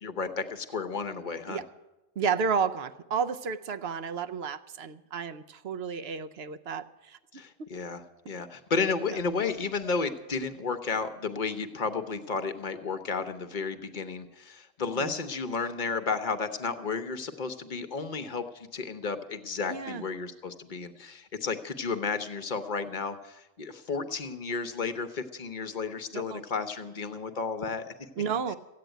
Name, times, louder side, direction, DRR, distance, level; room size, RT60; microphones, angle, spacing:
voice 1, 0.0-1.6 7.3-27.9, left 4 dB, 40° left, 9 dB, 1.0 m, -32 dB
voice 2, 2.2-7.2 7.6-7.7 15.0-15.1 19.7-20.0 26.1-26.4 28.2-28.6, right 6 dB, 60° right, 12 dB, 0.8 m, -32 dB
15.0 x 8.7 x 9.1 m, 1.0 s
omnidirectional pair, 1.3 m